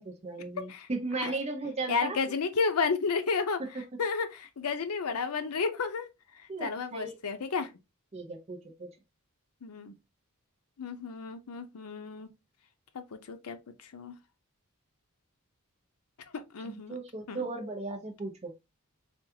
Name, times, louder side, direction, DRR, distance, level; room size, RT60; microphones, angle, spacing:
voice 1, 0.0-2.2 3.6-3.7 6.5-7.1 8.1-8.9 16.6-18.5, right 3 dB, 30° right, 0.6 m, -36 dB
voice 2, 1.9-6.1 6.4-7.7 9.6-9.9 10.8-12.3 12.9-13.6 13.9-14.2 16.3-16.9 17.3-17.5, left 5 dB, 80° left, 0.6 m, -32 dB
3.4 x 2.3 x 2.7 m
head